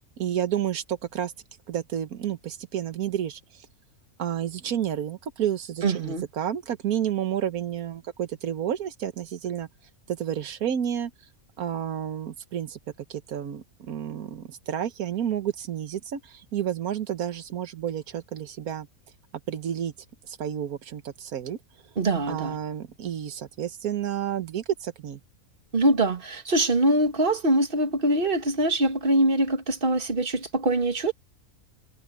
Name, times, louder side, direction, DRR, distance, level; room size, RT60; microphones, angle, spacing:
voice 1, 0.2-1.3 1.7-3.7 4.2-9.7 10.1-11.1 11.6-12.8 13.1-18.9 19.5-19.9 20.3-21.6 22.3-25.2, right 10 dB, 85° right, 1.5 m, -30 dB
voice 2, 5.8-6.3 22.0-22.6 25.7-31.1, right 1 dB, 40° right, 2.1 m, -23 dB
omnidirectional pair, 1.5 m